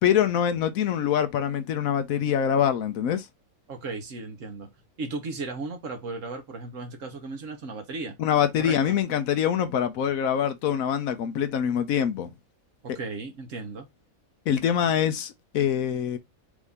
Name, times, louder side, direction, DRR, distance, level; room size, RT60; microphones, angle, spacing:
voice 1, 0.0-3.3 8.2-12.3 14.5-16.2, left 9 dB, 80° left, 1.1 m, -24 dB
voice 2, 3.7-4.7 5.0-8.2 8.6-9.0 12.8-13.9, right 3 dB, 65° right, 1.5 m, -36 dB
4.8 x 2.7 x 3.6 m
omnidirectional pair, 1.5 m